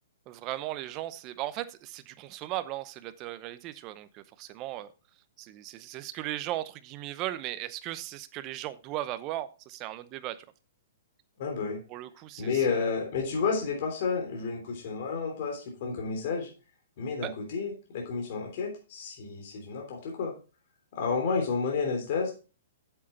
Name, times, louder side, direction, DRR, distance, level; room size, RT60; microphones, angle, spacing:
voice 1, 0.3-4.9 5.4-10.4 11.9-12.6 17.2-17.3, right 14 dB, 25° right, 13 dB, 0.7 m, -37 dB
voice 2, 11.4-11.8 12.4-16.5 17.0-20.3 20.9-22.3, left 5 dB, 45° left, 0 dB, 3.3 m, -31 dB
8.5 x 7.7 x 4.3 m, 0.34 s
hypercardioid pair, 160°, 0 cm